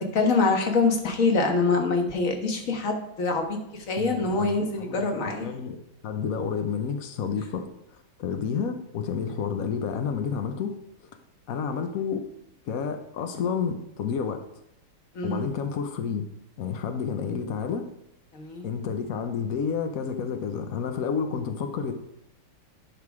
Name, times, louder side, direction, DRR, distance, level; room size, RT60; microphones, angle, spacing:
voice 1, 0.1-5.5 15.1-15.4 18.3-18.6, left 3 dB, 40° left, 3 dB, 1.5 m, -25 dB
voice 2, 4.0-5.0 5.4-5.8 6.0-10.7 11.0-11.1 11.5-12.2 12.6-14.4 15.2-16.3 16.6-17.8 18.6-21.9, left 6 dB, 75° left, 6 dB, 0.7 m, -30 dB
10.5 x 5.9 x 4.8 m, 0.85 s
omnidirectional pair, 2.4 m